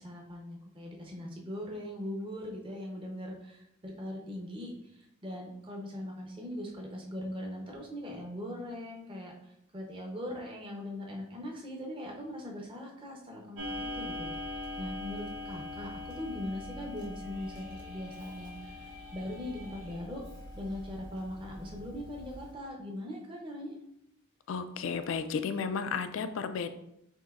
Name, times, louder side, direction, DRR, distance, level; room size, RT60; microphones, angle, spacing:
voice 1, 0.0-14.3 14.8-20.2 20.5-23.7, left 1 dB, 25° right, 0 dB, 0.7 m, -40 dB
Clock, 13.6-22.5, left 2 dB, 60° right, 1.0 m, -42 dB
sound 1, 17.1-20.0, equal, 85° right, 1.6 m, -56 dB
voice 2, 24.5-26.7, left 5 dB, 70° left, 10 dB, 0.3 m, -33 dB
6.4 x 2.7 x 2.4 m, 0.81 s
head